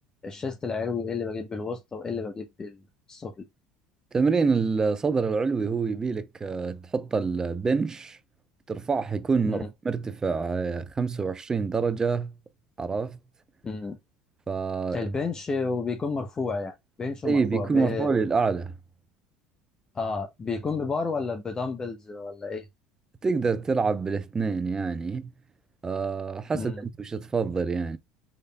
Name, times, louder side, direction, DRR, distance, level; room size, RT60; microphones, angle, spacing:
voice 1, 0.2-2.8 3.1-3.3 9.5-9.7 13.6-14.0 14.9-18.1 19.9-22.6 26.5-26.8, left 4 dB, 25° left, 0.6 m, -31 dB
voice 2, 4.1-8.2 8.7-12.3 12.8-13.2 14.5-15.0 17.2-18.7 23.2-25.3 25.8-28.0, right 4 dB, 25° right, 0.5 m, -26 dB
3.9 x 3.3 x 2.2 m
hypercardioid pair, 75°, 3 cm